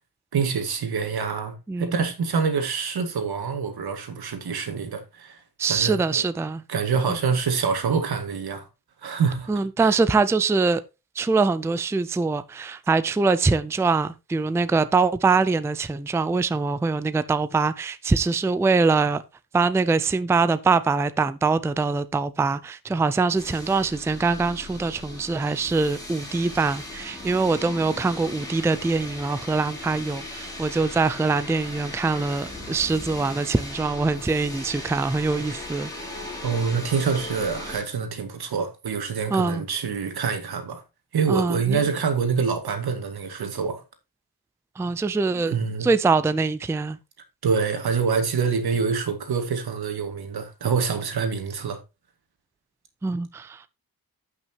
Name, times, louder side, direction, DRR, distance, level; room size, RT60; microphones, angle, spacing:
voice 1, 0.3-5.4 5.7-6.2 6.7-8.7 9.0-9.5 9.8-10.0 36.4-40.8 41.1-43.8 45.3-45.9 47.4-51.8, right 5 dB, 85° right, 2.0 m, -26 dB
voice 2, 1.7-2.1 5.6-6.6 7.1-7.2 9.5-10.8 11.2-19.2 19.5-35.9 39.3-39.6 41.3-41.8 44.8-47.0 53.0-53.7, right 4 dB, 10° right, 0.4 m, -23 dB
sound 1, 23.3-37.8, left 1 dB, 10° left, 3.5 m, -38 dB
15.0 x 6.0 x 2.9 m
wide cardioid pair, 165°, 37 cm